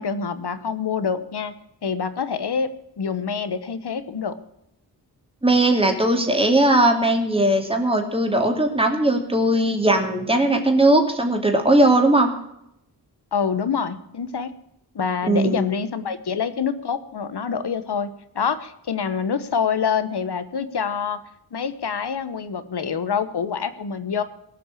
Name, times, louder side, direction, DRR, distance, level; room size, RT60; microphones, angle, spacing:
voice 1, 0.0-1.5 1.8-4.4 13.3-14.5 14.9-21.2 21.5-24.2, left 6 dB, 75° left, 12 dB, 1.2 m, -26 dB
voice 2, 5.4-12.3 15.3-15.6, right 1 dB, 15° right, 3 dB, 2.5 m, -19 dB
18.0 x 6.1 x 8.4 m, 0.78 s
wide cardioid pair, 70°, 40 cm